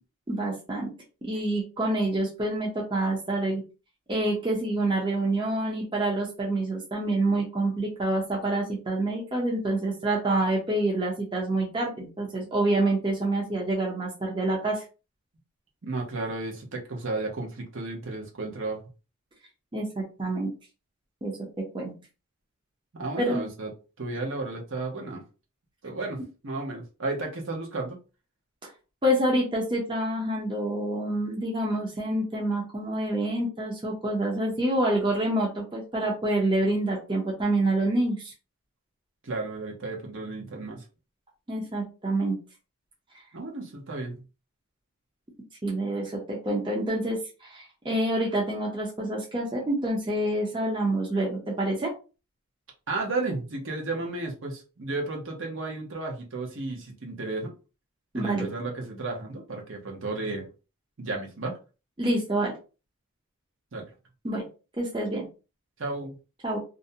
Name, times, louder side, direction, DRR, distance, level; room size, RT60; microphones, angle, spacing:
voice 1, 0.3-0.9 1.2-3.6 4.1-14.8 19.7-20.5 21.2-21.4 21.7-21.9 23.2-23.4 29.0-38.3 41.5-42.4 45.6-51.9 58.1-58.5 62.0-62.5 64.2-64.4 64.8-65.3 66.4-66.6, right 1 dB, 20° right, 0.6 m, -27 dB
voice 2, 15.8-18.8 22.9-23.7 24.0-25.2 25.8-26.2 26.4-28.0 39.2-40.8 43.3-44.2 52.9-57.5 58.1-60.5 61.0-61.6 63.7-63.9 65.8-66.1, right 3 dB, 60° right, 0.8 m, -33 dB
2.5 x 2.1 x 2.6 m
head